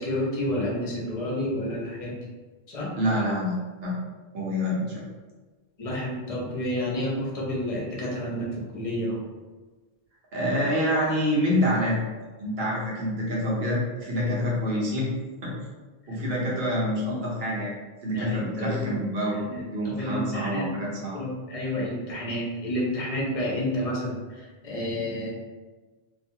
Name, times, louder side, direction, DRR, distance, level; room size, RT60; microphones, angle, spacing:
voice 1, 0.0-2.1 2.7-2.9 5.8-9.2 18.1-19.0 19.5-20.7 21.1-24.2 24.6-25.3, left 1 dB, 40° left, -4 dB, 0.7 m, -30 dB
voice 2, 3.0-4.0 4.3-5.0 10.3-12.0 12.4-15.1 15.4-15.5 16.1-17.7 18.0-19.4 19.7-21.2, equal, 75° right, -4 dB, 1.0 m, -26 dB
2.5 x 2.3 x 2.7 m, 1.3 s
omnidirectional pair, 1.0 m